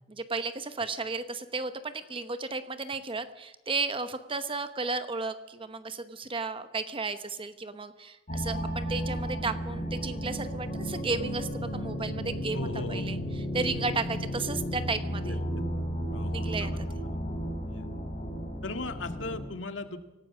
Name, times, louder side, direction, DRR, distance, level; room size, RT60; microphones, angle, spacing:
voice 1, 0.1-15.4 16.3-16.7, right 3 dB, 30° right, 10 dB, 1.0 m, -34 dB
sound 1, 8.3-19.4, equal, 45° left, 4.2 m, -33 dB
voice 2, 12.5-13.0 13.9-14.0 15.2-15.6 16.1-17.2 17.7-17.9 18.6-20.0, left 2 dB, 85° left, 7 dB, 1.9 m, -38 dB
25.5 x 17.5 x 6.2 m, 1.0 s
head